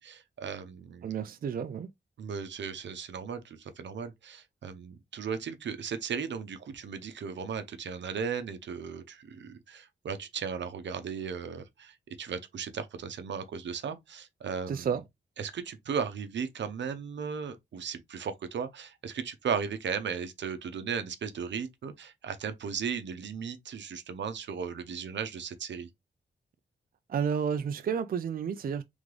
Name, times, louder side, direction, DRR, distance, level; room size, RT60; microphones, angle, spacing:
voice 1, 0.0-1.1 2.2-14.9 15.4-25.9, right 6 dB, 85° right, 0.7 m, -36 dB
voice 2, 1.0-1.9 14.7-15.0 27.1-28.8, right 7 dB, 55° right, 0.4 m, -31 dB
3.7 x 3.5 x 3.2 m
wide cardioid pair, 140°, 18 cm